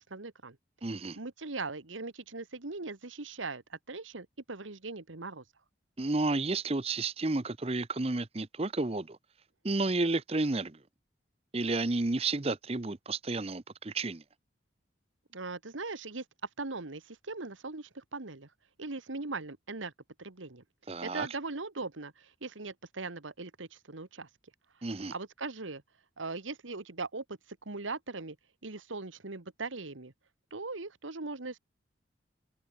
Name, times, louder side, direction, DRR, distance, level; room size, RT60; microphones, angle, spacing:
voice 1, 0.1-0.6 1.2-5.4 15.3-16.2 16.6-18.5 18.8-19.9 20.2-20.6 21.0-24.3 25.1-25.8 26.2-27.4 27.7-28.4 28.6-30.1 30.5-31.6, right 3 dB, 90° right, 1.6 m, -40 dB
voice 2, 0.8-1.2 6.0-9.2 9.6-10.8 11.5-14.2 20.9-21.3 24.8-25.1, right 3 dB, 30° right, 0.7 m, -31 dB
head